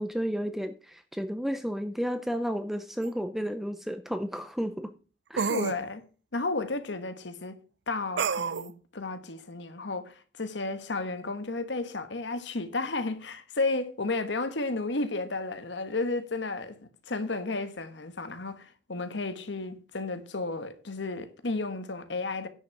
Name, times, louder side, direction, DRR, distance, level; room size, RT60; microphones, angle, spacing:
voice 1, 0.0-4.9 5.3-5.5, equal, ahead, 0.5 m, -32 dB
sound 1, 3.0-3.1 5.4-5.8 8.2-8.7, right 6 dB, 70° right, 0.5 m, -28 dB
voice 2, 5.5-6.0 6.3-7.6 7.9-16.8 17.1-22.5, left 3 dB, 75° left, 1.3 m, -33 dB
9.9 x 6.2 x 5.8 m
head